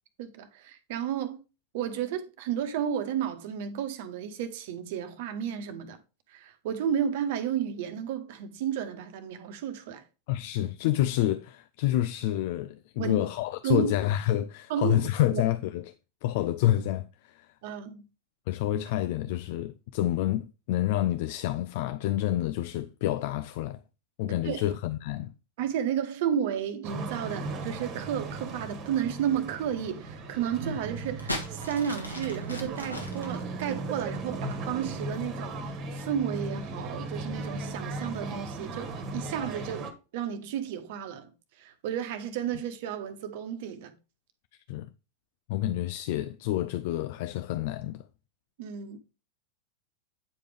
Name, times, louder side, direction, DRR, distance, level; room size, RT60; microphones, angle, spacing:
voice 1, 0.2-1.4 1.7-6.0 6.3-10.0 13.0-13.2 13.6-13.9 14.7-15.4 17.6-18.0 24.3-24.6 25.6-41.3 41.6-43.9 48.6-49.0, right 9 dB, 50° right, 1.1 m, -32 dB
voice 2, 10.3-15.8 16.2-17.5 18.5-23.8 24.2-25.3 44.7-44.9 45.5-48.0, left 13 dB, 50° left, 0.4 m, -28 dB
sound 1, 26.8-39.9, right 2 dB, 35° right, 1.5 m, -37 dB
sound 2, 31.0-34.7 35.5-35.8, left 1 dB, 85° left, 1.7 m, -38 dB
9.0 x 5.1 x 3.3 m
figure-of-eight pair, 90°, 0 cm